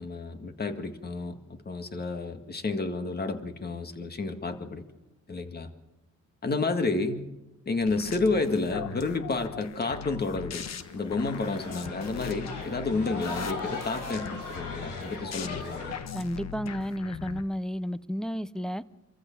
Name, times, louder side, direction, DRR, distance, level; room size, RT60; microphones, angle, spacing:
voice 1, 0.0-1.4 1.7-4.8 5.3-5.7 6.4-7.3 7.7-10.7 10.9-16.0, left 3 dB, 30° left, 7 dB, 2.0 m, -30 dB
sound 1, 7.8-17.4, left 7 dB, 60° left, 1.3 m, -39 dB
sound 2, 10.7-15.9, left 2 dB, 90° left, 7.5 m, -40 dB
voice 2, 16.1-18.8, equal, ahead, 16 dB, 0.7 m, -32 dB
25.5 x 14.5 x 7.3 m, 1.0 s
cardioid pair, 90°, 30 cm